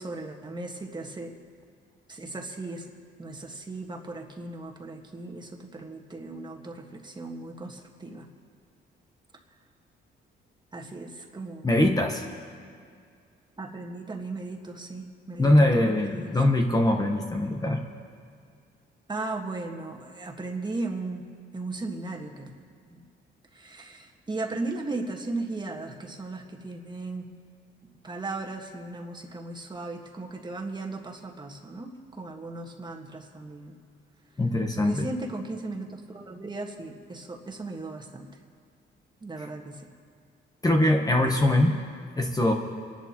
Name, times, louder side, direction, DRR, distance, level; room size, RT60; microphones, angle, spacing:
voice 1, 0.0-1.3 2.1-2.9 3.2-8.3 10.7-11.7 13.6-16.3 19.1-21.3 21.5-22.5 22.9-23.1 23.5-27.3 28.0-33.8 34.7-38.3 39.2-39.9, right 2 dB, 20° right, 1 dB, 1.6 m, -37 dB
voice 2, 11.6-12.2 15.4-17.8 34.4-35.0 40.6-41.8 42.2-42.5, left 1 dB, 20° left, 2 dB, 1.1 m, -22 dB
28.0 x 11.5 x 3.0 m, 2.2 s
cardioid pair, 90°, 20 cm